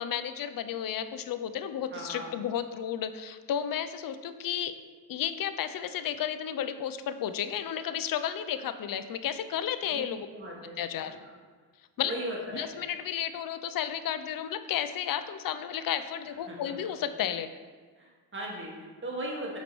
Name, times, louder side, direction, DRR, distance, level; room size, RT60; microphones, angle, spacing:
voice 1, 0.0-4.8 5.1-10.3 10.8-11.1 12.0-12.1 12.5-17.5, left 9 dB, 50° left, 11 dB, 0.5 m, -32 dB
voice 2, 1.9-2.3 9.9-10.0 10.3-10.8 12.1-12.7 16.5-16.9 18.0-19.6, right 1 dB, 25° right, -3 dB, 1.8 m, -38 dB
6.5 x 5.3 x 3.1 m, 1.5 s
cardioid pair, 85°, 45 cm